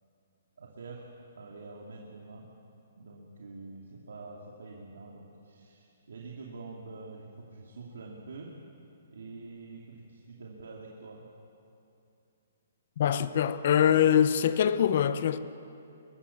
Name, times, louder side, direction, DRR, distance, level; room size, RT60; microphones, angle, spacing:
voice 1, 0.6-1.1 1.4-2.5 3.0-8.6 9.1-11.3, right 3 dB, 85° right, 2.7 m, -46 dB
voice 2, 13.0-15.4, left 9 dB, 45° left, 0.9 m, -23 dB
23.5 x 21.0 x 7.3 m
hypercardioid pair, 170°, 0 cm